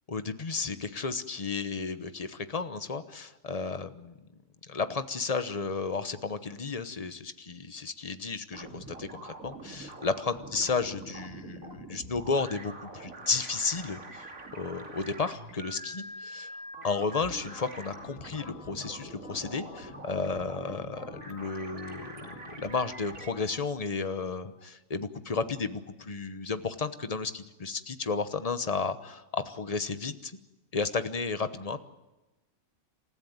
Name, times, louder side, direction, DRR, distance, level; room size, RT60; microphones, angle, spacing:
voice 1, 0.1-4.1 4.7-16.5 16.8-30.3 30.7-31.8, left 4 dB, 30° left, 10 dB, 1.0 m, -33 dB
sound 1, 8.5-23.3, right 2 dB, 85° right, 3.1 m, -45 dB
sound 2, 16.8-23.6, left 7 dB, 75° left, 1.5 m, -51 dB
28.0 x 14.5 x 9.4 m, 1.1 s
omnidirectional pair, 1.4 m